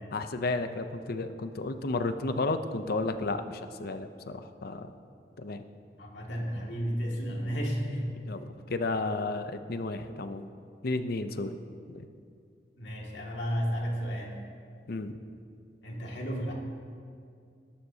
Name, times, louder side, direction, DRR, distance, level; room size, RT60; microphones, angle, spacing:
voice 1, 0.1-4.9 5.4-5.6 8.2-10.5 10.8-11.6 11.9-12.1 14.9-15.1, left 3 dB, 60° left, 9 dB, 0.7 m, -32 dB
voice 2, 6.0-8.1 12.8-14.3 15.8-16.5, equal, 85° left, -2 dB, 2.3 m, -32 dB
19.0 x 11.5 x 2.8 m, 2.3 s
head